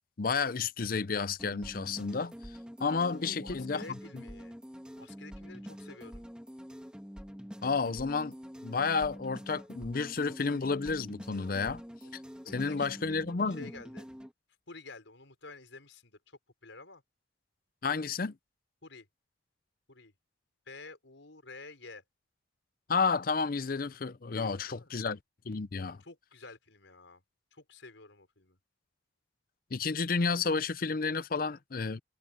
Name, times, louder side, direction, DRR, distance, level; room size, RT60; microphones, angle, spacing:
voice 1, 0.2-2.5 2.8-3.8 7.6-8.4 8.6-11.8 12.5-13.7 17.8-18.3 22.9-25.2 25.5-26.0 29.7-32.0, left 4 dB, 45° left, 0.6 m, -31 dB
sound 1, 1.4-14.3, equal, 5° right, 1.7 m, -46 dB
voice 2, 3.1-4.6 5.0-6.3 12.4-13.2 13.6-14.1 14.7-17.0 18.8-19.1 19.9-20.1 20.7-22.0 24.3-24.9 25.7-27.2 27.5-28.6, left 3 dB, 75° left, 5.3 m, -50 dB
head